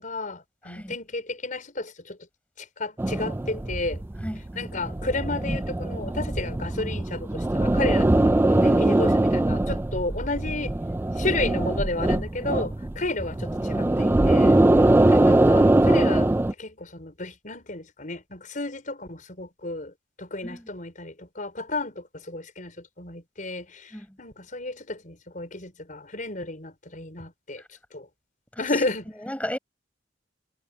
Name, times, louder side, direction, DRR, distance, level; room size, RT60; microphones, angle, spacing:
voice 1, 0.0-2.2 2.6-4.0 4.6-10.7 11.2-14.6 15.1-16.3 16.6-27.6 27.9-28.1 28.6-29.1, left 2 dB, 45° left, 5.3 m, -32 dB
voice 2, 0.7-1.0 4.2-4.9 8.7-8.8 14.0-14.8 20.4-20.6 23.9-24.1 28.6-28.7 29.2-29.6, equal, 5° left, 5.8 m, -35 dB
sound 1, 3.0-16.5, right 1 dB, 10° right, 0.3 m, -22 dB
head